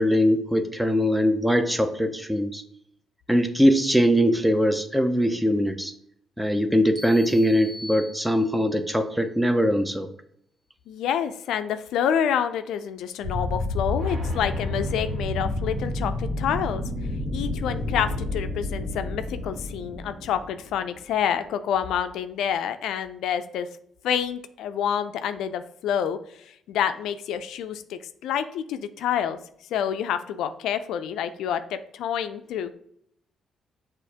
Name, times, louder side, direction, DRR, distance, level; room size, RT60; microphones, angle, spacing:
voice 1, 0.0-2.6 3.3-5.9 6.4-10.1, equal, 5° right, 8 dB, 0.5 m, -21 dB
sound 1, 6.9-8.9, left 1 dB, 25° right, 0.8 m, -42 dB
voice 2, 10.9-16.8 17.3-23.7 24.0-26.2 26.7-29.4 29.7-32.7, left 8 dB, 85° left, 10 dB, 0.3 m, -28 dB
sound 2, 13.2-21.0, left 2 dB, 60° right, 1.4 m, -30 dB
6.3 x 2.5 x 2.8 m, 0.69 s
cardioid pair, 90°, 0 cm